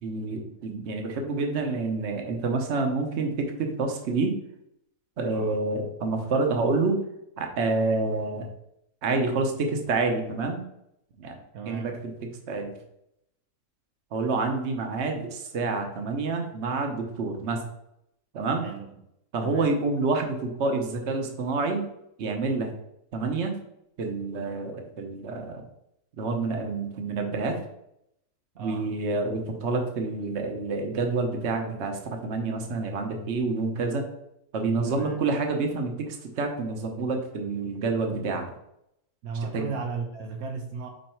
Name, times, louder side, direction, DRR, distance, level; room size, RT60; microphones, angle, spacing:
voice 1, 0.0-4.3 5.2-7.0 7.4-8.5 9.0-10.6 11.2-11.4 11.6-12.1 12.5-12.7 14.1-17.6 18.3-18.6 19.3-21.9 22.2-22.7 23.1-23.6 24.0-25.6 26.2-27.6 28.6-34.0 34.5-38.4 39.5-39.7, right 3 dB, 50° right, 1.2 m, -28 dB
voice 2, 11.5-12.0 18.6-18.9 19.4-19.7 28.6-28.9 34.9-35.2 39.2-40.9, right 5 dB, 75° right, 1.2 m, -35 dB
5.5 x 4.4 x 4.4 m
omnidirectional pair, 1.6 m